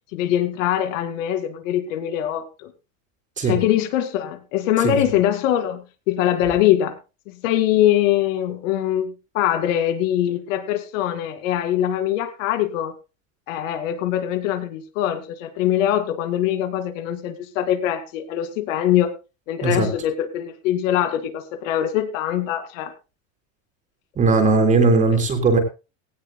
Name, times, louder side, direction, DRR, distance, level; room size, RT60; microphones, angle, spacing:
voice 1, 0.1-2.7 3.4-7.0 7.3-12.9 13.5-19.1 19.5-22.9, left 11 dB, 80° left, 9 dB, 2.4 m, -22 dB
voice 2, 24.2-25.6, right 3 dB, 20° right, 5 dB, 3.5 m, -18 dB
18.0 x 17.5 x 2.2 m, 0.30 s
cardioid pair, 170°, 38 cm